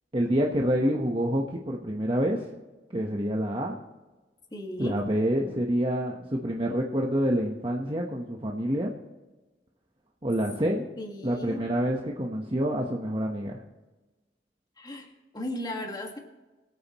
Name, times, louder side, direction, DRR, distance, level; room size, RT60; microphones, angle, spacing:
voice 1, 0.1-2.4 2.9-3.8 4.8-8.9 10.2-10.9 11.2-13.6, equal, 30° right, -1 dB, 1.2 m, -27 dB
voice 2, 4.5-5.0 11.0-11.7 14.8-16.2, left 1 dB, 25° left, 2 dB, 1.8 m, -36 dB
25.0 x 9.0 x 3.1 m, 1.2 s
head